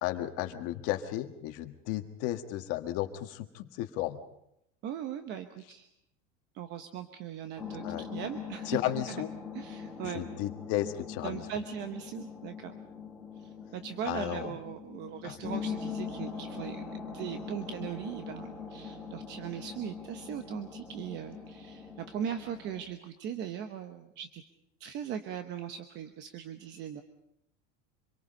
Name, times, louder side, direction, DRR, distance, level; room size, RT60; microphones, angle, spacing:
voice 1, 0.0-4.2 7.8-8.1 8.6-9.3 10.0-11.4 14.1-14.5 15.2-15.4, left 14 dB, 40° left, 6 dB, 1.6 m, -34 dB
voice 2, 4.8-5.9 6.5-8.8 9.1-9.2 9.5-10.3 11.2-12.7 13.4-16.8 17.1-24.4 24.8-27.0, right 9 dB, 30° right, 7 dB, 1.0 m, -39 dB
sound 1, 7.6-22.8, left 5 dB, ahead, 2.6 m, -42 dB
26.0 x 22.5 x 5.4 m, 0.78 s
supercardioid pair, 175°, 36 cm